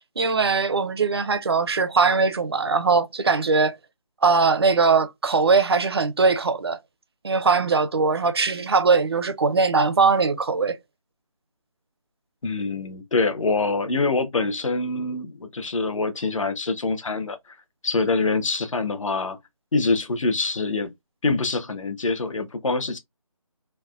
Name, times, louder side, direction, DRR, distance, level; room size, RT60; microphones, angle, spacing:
voice 1, 0.0-3.8 4.2-6.8 7.2-10.8, right 4 dB, 45° right, 0.5 m, -21 dB
voice 2, 12.4-17.6 17.8-19.4 19.7-20.9 21.2-23.0, left 3 dB, 65° left, 0.9 m, -25 dB
3.3 x 2.0 x 2.4 m
figure-of-eight pair, 170°, 18 cm